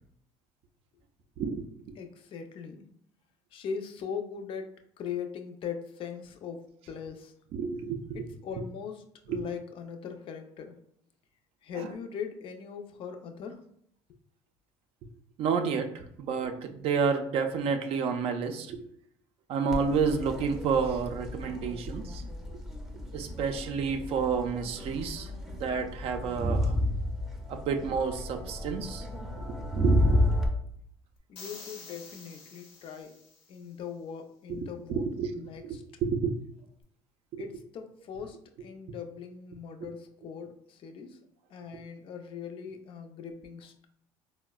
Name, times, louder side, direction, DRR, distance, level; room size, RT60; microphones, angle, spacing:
voice 1, 2.0-2.9 3.5-7.3 8.1-10.8 11.6-13.6 31.3-33.2 33.5-35.8 37.4-41.2 41.5-43.9, left 7 dB, 50° left, 5 dB, 0.4 m, -40 dB
voice 2, 7.5-8.3 9.3-9.5 15.4-18.9 19.5-22.2 23.1-26.8 27.5-29.1 29.4-30.2 34.5-34.6 34.9-35.5 36.0-36.3 37.3-37.4, right 5 dB, 60° right, 5 dB, 0.4 m, -30 dB
Crowd, 19.7-30.5, equal, 5° right, 0.5 m, -31 dB
sound 1, 31.3-33.6, left 4 dB, 85° left, 0.9 m, -48 dB
3.9 x 2.0 x 2.2 m, 0.67 s
cardioid pair, 100°, 11 cm